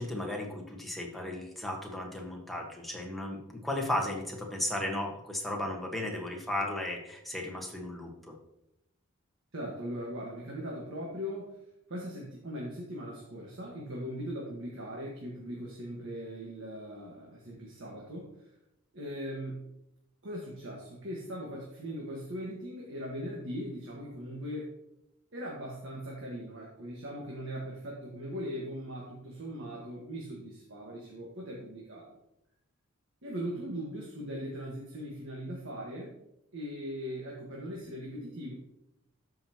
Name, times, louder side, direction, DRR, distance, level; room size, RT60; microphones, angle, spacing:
voice 1, 0.0-8.3, left 1 dB, ahead, -1 dB, 1.4 m, -35 dB
voice 2, 9.5-11.5 11.9-18.3 18.9-19.6 20.2-24.7 25.3-32.2 33.2-36.1 36.5-38.5, equal, 65° right, -3 dB, 1.6 m, -39 dB
13.0 x 5.7 x 3.0 m, 0.82 s
head